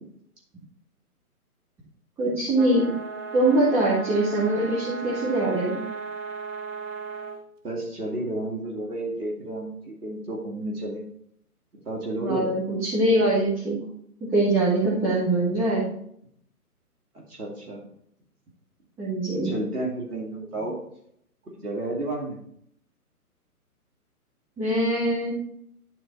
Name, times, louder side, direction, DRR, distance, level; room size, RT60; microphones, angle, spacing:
voice 1, 2.2-3.0 3.3-5.8 12.2-13.8 14.3-15.9 19.0-19.5 24.6-25.3, right 1 dB, 5° right, -8 dB, 0.8 m, -23 dB
sound 1, 2.5-7.4, right 5 dB, 55° right, 1.5 m, -35 dB
voice 2, 7.6-11.0 11.8-12.5 17.1-17.8 19.4-20.8 21.5-22.4, right 1 dB, 80° right, -2 dB, 2.6 m, -31 dB
11.0 x 4.2 x 4.1 m, 0.68 s
hypercardioid pair, 145°, 45 cm